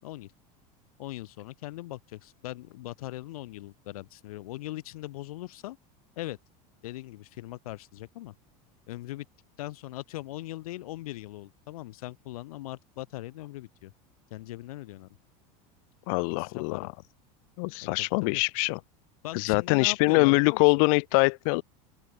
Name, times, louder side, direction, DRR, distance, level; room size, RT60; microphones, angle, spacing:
voice 1, 1.0-5.8 6.2-6.4 6.8-8.3 8.9-9.3 9.6-13.9 14.3-15.1 16.4-16.9 18.0-18.4 19.2-20.6, left 17 dB, 90° left, 5.8 m, -40 dB
voice 2, 16.1-16.8 17.6-18.8 19.3-21.6, left 34 dB, 70° left, 1.3 m, -23 dB
open air
supercardioid pair, 125°, 18 cm